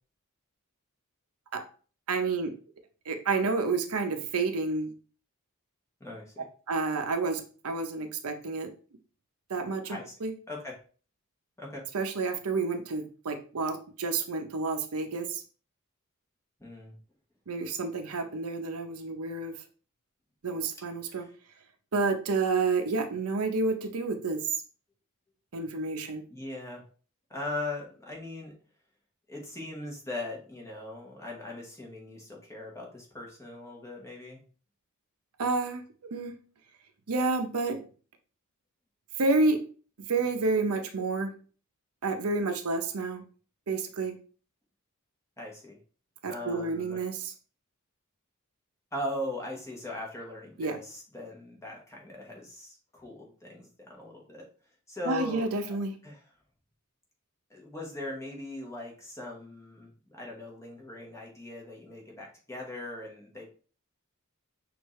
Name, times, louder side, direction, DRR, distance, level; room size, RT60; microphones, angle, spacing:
voice 1, 2.1-2.5 3.1-4.9 6.7-8.7 9.5-10.3 11.9-15.4 17.5-19.5 20.4-21.2 21.9-24.4 25.5-26.2 35.4-35.8 36.1-36.3 37.1-37.8 39.2-39.6 40.1-41.3 42.0-43.2 43.7-44.2 46.2-47.3 50.6-50.8 55.1-56.0, right 3 dB, 85° right, 6 dB, 0.7 m, -29 dB
voice 2, 6.0-6.5 9.9-10.1 10.5-10.7 11.6-11.8 16.6-16.9 21.1-21.3 26.3-26.8 27.3-28.5 29.3-34.4 45.4-45.8 46.3-47.0 48.9-54.5 54.9-55.5 56.0-56.2 57.5-63.5, left 1 dB, 15° left, -1 dB, 1.2 m, -40 dB
6.3 x 2.6 x 3.1 m, 0.39 s
head